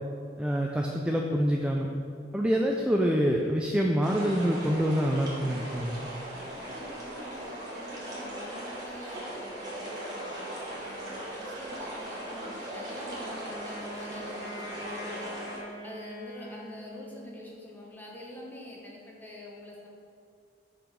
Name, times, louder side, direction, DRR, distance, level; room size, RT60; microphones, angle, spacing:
voice 1, 0.4-1.9 2.3-6.1, equal, 5° right, 0 dB, 0.3 m, -26 dB
sound 1, 4.0-15.6, right 1 dB, 20° right, 1.5 m, -39 dB
voice 2, 6.6-15.4 15.8-19.9, left 1 dB, 10° left, -3 dB, 1.0 m, -46 dB
Wind instrument woodwind instrument, 13.2-17.4, equal, 50° left, 1.5 m, -43 dB
5.9 x 4.7 x 5.1 m, 2.4 s
head